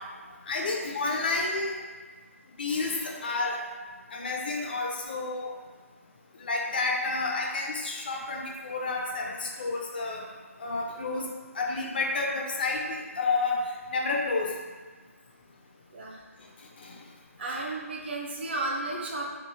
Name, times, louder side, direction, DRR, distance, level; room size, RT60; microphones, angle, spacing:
voice 1, 0.5-1.8 2.6-3.6 4.1-5.5 6.4-10.3 10.6-11.3 11.5-13.6 13.9-14.5 16.8-17.0, left 3 dB, 40° left, -1 dB, 0.4 m, -30 dB
voice 2, 17.4-19.4, right 2 dB, 45° right, -2 dB, 0.6 m, -34 dB
3.1 x 2.5 x 3.3 m, 1.3 s
figure-of-eight pair, 155°, 8 cm